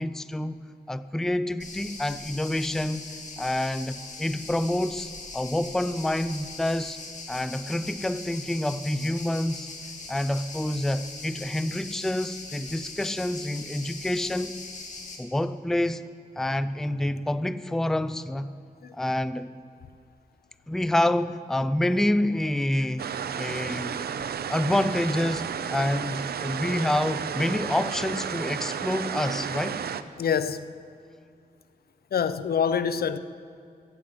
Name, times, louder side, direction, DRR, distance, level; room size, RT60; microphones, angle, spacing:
voice 1, 0.0-3.1 3.4-7.0 7.3-9.7 10.1-14.6 15.2-16.1 16.4-18.5 18.9-19.5 20.7-23.1 23.4-24.0 24.5-29.8, left 1 dB, 5° left, 0.4 m, -27 dB
sound 1, 1.6-15.2, left 3 dB, 50° left, 2.2 m, -41 dB
sound 2, 23.0-30.0, right 7 dB, 80° right, 0.6 m, -32 dB
voice 2, 30.2-30.7 32.1-33.2, left 7 dB, 75° left, 0.6 m, -25 dB
15.0 x 7.5 x 9.2 m
wide cardioid pair, 110°, 16 cm